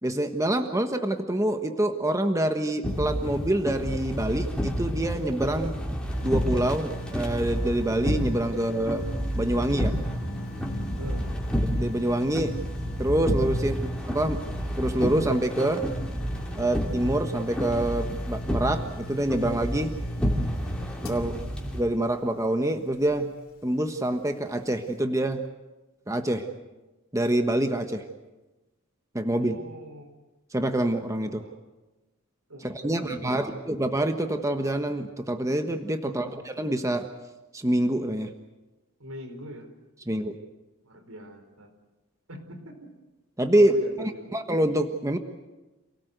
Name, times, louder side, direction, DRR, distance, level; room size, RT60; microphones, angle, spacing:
voice 1, 0.0-5.8 6.2-9.0 9.4-10.0 11.6-12.5 13.0-14.4 14.8-15.8 16.6-19.9 21.1-21.3 21.7-23.3 23.6-25.4 26.1-26.5 27.1-28.0 29.1-29.6 30.5-31.4 32.6-37.1 37.5-38.3 40.1-40.4 43.4-43.7 44.3-45.2, right 1 dB, 15° right, 6 dB, 1.3 m, -26 dB
sound 1, 2.8-21.8, equal, 5° left, 3.1 m, -30 dB
sound 2, 6.1-23.3 23.8-23.9, equal, 75° left, 2.8 m, -40 dB
sound 3, 6.2-11.4, left 1 dB, 90° left, 1.9 m, -42 dB
voice 2, 11.0-11.3 21.2-21.5 29.4-30.1 31.2-31.6 32.5-33.8 36.0-36.4 39.0-39.7 40.0-40.1 40.8-41.7 42.3-42.9 43.5-44.4, equal, 90° right, 5 dB, 4.8 m, -42 dB
28.0 x 18.5 x 8.1 m, 1.1 s
head